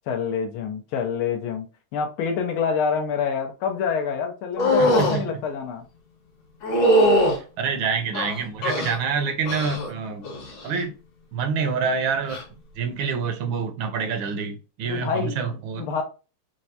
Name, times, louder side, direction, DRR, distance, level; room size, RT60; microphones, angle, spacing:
voice 1, 0.1-1.7 1.9-5.8 14.9-16.0, left 6 dB, 90° left, 1.6 m, -27 dB
sound 1, 4.6-5.2 6.6-7.4 8.1-9.0 9.5-9.9 10.2-10.7 12.2-12.4, equal, 60° left, 1.7 m, -21 dB
voice 2, 4.8-5.2 7.6-10.2 10.6-10.9 11.3-12.4 12.8-15.9, right 5 dB, 75° right, 1.3 m, -27 dB
4.6 x 2.1 x 2.6 m
omnidirectional pair, 2.3 m